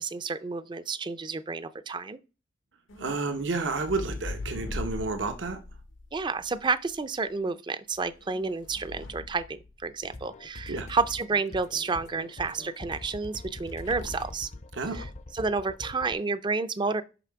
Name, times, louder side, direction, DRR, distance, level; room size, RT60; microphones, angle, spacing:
voice 1, 0.0-2.2 6.1-14.5 14.9-15.0 15.3-17.0, right 4 dB, 25° right, 0.4 m, -30 dB
sound 1, 2.9-7.0 8.0-10.3 13.6-14.5 14.9-15.3, left 2 dB, 85° left, 0.8 m, -41 dB
voice 2, 3.0-5.6 10.7-10.9 14.7-15.1, right 3 dB, 80° right, 0.9 m, -31 dB
sound 2, 10.0-16.1, left 2 dB, 40° left, 0.5 m, -44 dB
5.9 x 5.6 x 4.6 m
head